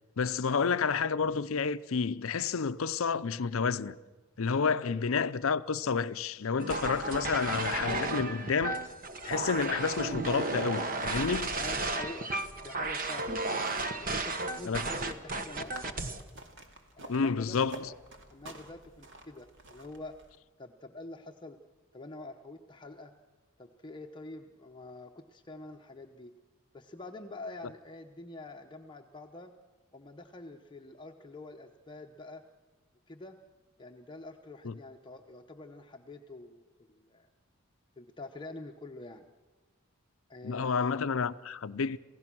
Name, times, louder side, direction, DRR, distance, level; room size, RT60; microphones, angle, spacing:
voice 1, 0.2-4.0 4.4-8.8 9.2-11.6 14.6-14.8 17.1-17.9 34.6-34.7 40.4-42.0, left 5 dB, 65° left, 0.6 m, -30 dB
sound 1, 6.6-16.2, right 2 dB, 40° right, 1.2 m, -33 dB
sound 2, 9.2-20.4, right 1 dB, 55° right, 2.4 m, -53 dB
voice 2, 11.5-12.3 12.6-13.4 14.0-16.0 17.0-17.9 18.3-20.1 20.6-21.6 21.9-23.1 23.6-26.3 26.7-29.5 29.9-32.4 33.1-33.4 33.8-37.3 38.0-39.3 40.3-41.0, left 2 dB, 20° left, 0.8 m, -46 dB
28.0 x 16.0 x 6.1 m
head